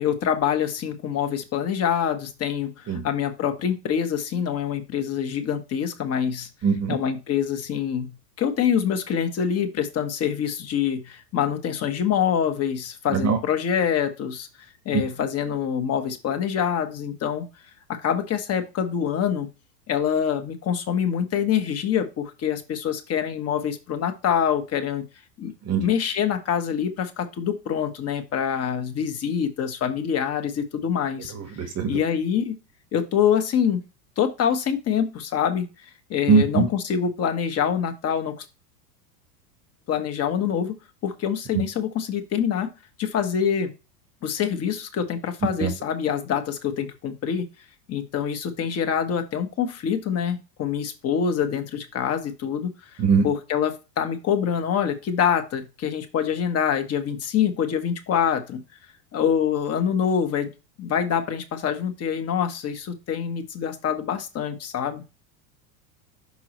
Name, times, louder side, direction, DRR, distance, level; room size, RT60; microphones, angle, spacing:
voice 1, 0.0-6.5 6.9-8.1 8.4-14.5 14.8-17.4 17.9-19.5 19.9-25.0 25.4-25.5 25.8-31.3 31.6-32.6 32.9-33.8 34.2-35.6 36.1-38.4 39.9-40.8 41.0-42.7 43.0-43.7 44.2-47.4 47.9-52.7 53.2-58.6 59.1-60.5 60.8-65.0, left 8 dB, 30° left, 7 dB, 1.1 m, -25 dB
voice 2, 6.6-6.9 13.1-13.4 25.7-25.8 31.3-32.0 36.3-36.7 41.5-41.6 45.6-45.7 53.0-53.2, right 5 dB, 30° right, 6 dB, 1.4 m, -21 dB
6.2 x 5.6 x 3.1 m, 0.28 s
supercardioid pair, 125°, 49 cm